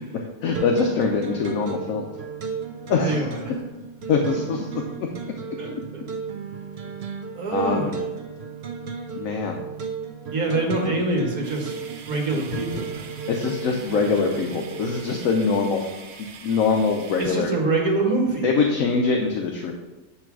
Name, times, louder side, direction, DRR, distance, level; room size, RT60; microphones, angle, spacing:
voice 1, 0.0-2.1 2.9-3.3 4.1-5.1 7.5-7.9 9.2-9.6 13.3-15.9 16.2-17.5 18.4-19.7, left 4 dB, 70° left, 2 dB, 1.1 m, -23 dB
sound 1, 0.5-15.3, right 5 dB, 55° right, 0.8 m, -35 dB
voice 2, 2.9-3.6 5.6-6.0 7.3-7.9 10.3-11.7 12.0-13.2 17.2-18.5, right 2 dB, 70° right, 0 dB, 1.9 m, -25 dB
sound 2, 11.4-17.3, right 5 dB, 85° right, 1.3 m, -43 dB
8.4 x 3.2 x 5.9 m, 1.1 s
omnidirectional pair, 1.6 m